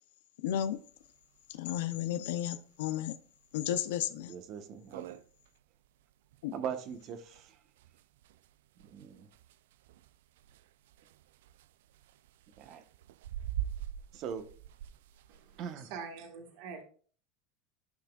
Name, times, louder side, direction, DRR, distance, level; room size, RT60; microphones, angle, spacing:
voice 1, 0.4-0.8 1.6-3.1 3.5-4.3 6.4-6.5, left 11 dB, 85° left, 0.6 m, -33 dB
sound 1, 0.7-0.8 1.1-1.2 1.5-1.6 2.2-2.4 2.9-3.0 3.5-3.6 3.9-4.0 4.5-4.6 4.7-15.7, right 11 dB, 85° right, 0.3 m, -44 dB
voice 2, 4.1-5.2 6.5-7.6 8.9-9.3 12.6-12.8 14.1-14.5 15.6-15.9, right 8 dB, 50° right, 1.1 m, -41 dB
voice 3, 15.3-16.8, right 5 dB, 70° right, 1.5 m, -45 dB
12.5 x 5.8 x 2.4 m
supercardioid pair, 120°, 0 cm